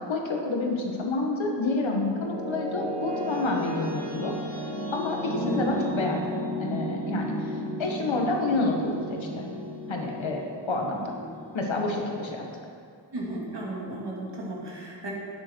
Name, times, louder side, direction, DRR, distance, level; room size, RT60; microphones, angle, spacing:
voice 1, 0.0-4.3 4.9-7.5 7.8-9.5 9.9-11.1 11.5-12.4, left 2 dB, 85° left, 0 dB, 1.7 m, -29 dB
sound 1, 1.3-12.4, left 1 dB, 15° left, 1.9 m, -34 dB
voice 2, 13.1-15.1, right 2 dB, 60° right, -4 dB, 2.7 m, -34 dB
11.0 x 9.4 x 4.7 m, 2.3 s
wide cardioid pair, 100°, 45 cm